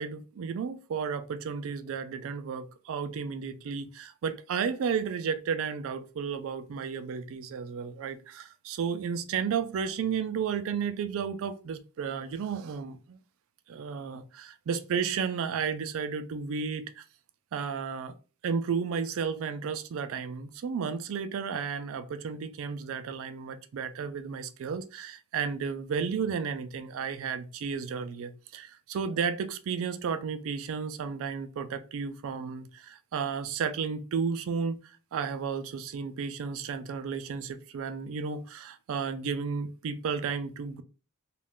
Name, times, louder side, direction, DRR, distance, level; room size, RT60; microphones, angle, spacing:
voice 1, 0.0-13.2 13.7-17.0 17.5-18.2 18.4-34.8 35.1-40.8, right 6 dB, 65° right, 0.3 m, -33 dB
2.4 x 2.1 x 3.5 m
head